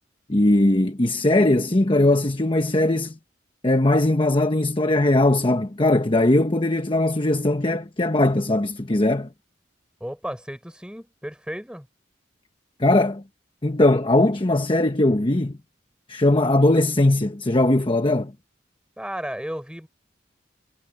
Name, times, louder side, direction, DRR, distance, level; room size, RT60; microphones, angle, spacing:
voice 1, 0.3-3.2 3.6-9.3 12.8-13.2 13.6-15.6 16.1-18.3, left 1 dB, 30° left, 1.1 m, -20 dB
voice 2, 10.0-11.9 19.0-19.9, equal, 5° right, 6.8 m, -34 dB
head